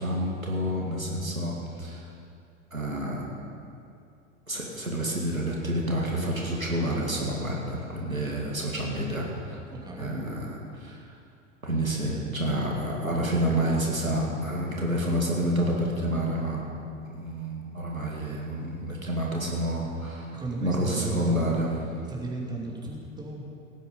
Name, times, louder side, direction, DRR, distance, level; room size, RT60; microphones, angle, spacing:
voice 1, 0.0-2.1 2.7-3.2 4.5-9.6 10.0-11.0 11.6-16.6 17.0-21.7, right 1 dB, 90° right, -3 dB, 2.2 m, -29 dB
voice 2, 9.7-10.2 20.3-21.7 22.1-23.4, right 2 dB, 10° right, -2 dB, 2.5 m, -35 dB
17.5 x 9.2 x 5.5 m, 2.5 s
figure-of-eight pair, 85°, 40 cm